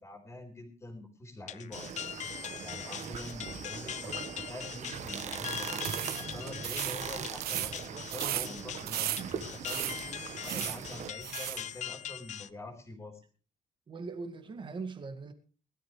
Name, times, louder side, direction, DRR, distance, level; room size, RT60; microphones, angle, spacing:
voice 1, 0.0-2.1 2.6-5.8 6.2-10.1 10.4-13.2, left 2 dB, 15° left, 3.8 m, -45 dB
sound 1, 1.5-12.5, left 10 dB, 50° left, 0.7 m, -42 dB
sound 2, 1.7-11.1, right 7 dB, 50° right, 1.4 m, -41 dB
sound 3, 5.8-11.7, right 14 dB, 80° right, 0.9 m, -37 dB
voice 2, 13.9-15.3, right 4 dB, 30° right, 2.0 m, -40 dB
20.5 x 13.0 x 3.3 m
cardioid pair, 180°, 16 cm